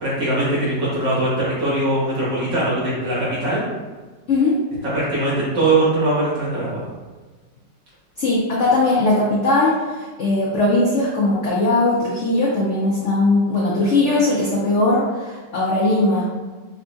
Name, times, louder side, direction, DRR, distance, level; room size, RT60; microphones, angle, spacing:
voice 1, 0.0-3.6 4.9-6.8, right 2 dB, 85° right, -8 dB, 2.2 m, -21 dB
voice 2, 8.2-16.5, left 2 dB, 80° left, -5 dB, 0.6 m, -19 dB
5.3 x 2.2 x 2.6 m, 1.3 s
omnidirectional pair, 1.9 m